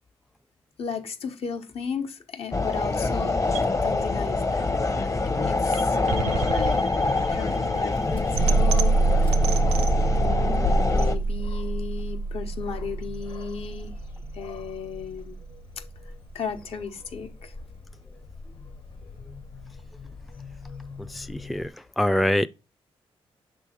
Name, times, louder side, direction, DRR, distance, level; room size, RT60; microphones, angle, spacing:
voice 1, 0.8-3.5 3.7-6.9 7.2-9.6 10.1-13.9 14.3-15.4 16.0-17.6, left 6 dB, 70° left, 1.1 m, -35 dB
sound 1, 2.5-11.2, left 3 dB, 30° left, 0.8 m, -25 dB
sound 2, 3.5-15.5, right 3 dB, 85° right, 0.6 m, -27 dB
Dog, 5.9-21.7, left 3 dB, 55° left, 1.4 m, -38 dB
voice 2, 21.0-22.5, left 1 dB, ahead, 0.3 m, -25 dB
6.5 x 3.6 x 4.4 m
cardioid pair, 60°, 10 cm